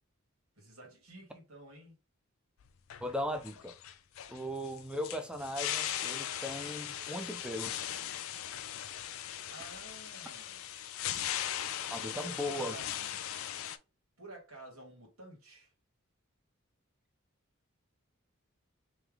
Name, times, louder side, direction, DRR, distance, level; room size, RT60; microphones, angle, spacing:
voice 1, 0.6-2.0 9.5-10.7 11.8-13.4 14.2-15.7, right 2 dB, 80° right, 1.9 m, -52 dB
sound 1, 2.6-13.8, left 11 dB, 75° left, 0.4 m, -39 dB
voice 2, 3.0-3.7 4.3-7.8 11.9-12.8, equal, 5° right, 0.5 m, -38 dB
3.3 x 3.0 x 3.6 m
head